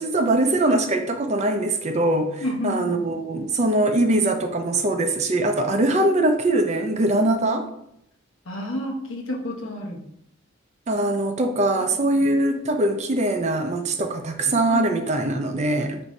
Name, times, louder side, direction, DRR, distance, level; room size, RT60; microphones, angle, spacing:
voice 1, 0.0-7.7 10.9-16.0, right 2 dB, 35° right, 5 dB, 0.4 m, -22 dB
voice 2, 2.4-3.1 8.4-10.1 11.7-12.3 14.7-14.8, left 1 dB, 70° left, 0 dB, 0.8 m, -31 dB
4.6 x 2.6 x 4.0 m, 0.74 s
head